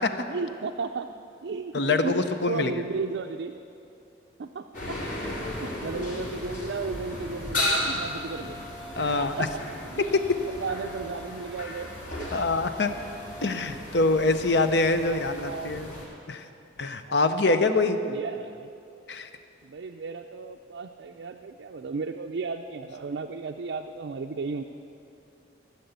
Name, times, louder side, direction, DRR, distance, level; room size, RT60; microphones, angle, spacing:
voice 1, 0.3-1.1 1.4-3.5 4.4-5.0 5.3-8.6 9.0-9.6 9.9-10.1 10.5-12.5 14.9-15.9 17.1-18.7 19.6-24.6, right 4 dB, 75° right, 4 dB, 0.4 m, -35 dB
voice 2, 1.7-2.7 9.0-9.3 10.0-10.1 12.3-12.9 13.4-15.9 16.3-16.4 16.8-18.0 19.1-19.3, left 3 dB, 70° left, 9 dB, 0.7 m, -24 dB
sound 1, 4.7-16.0, left 1 dB, 50° left, 3.6 m, -35 dB
15.0 x 6.8 x 8.1 m, 2.7 s
head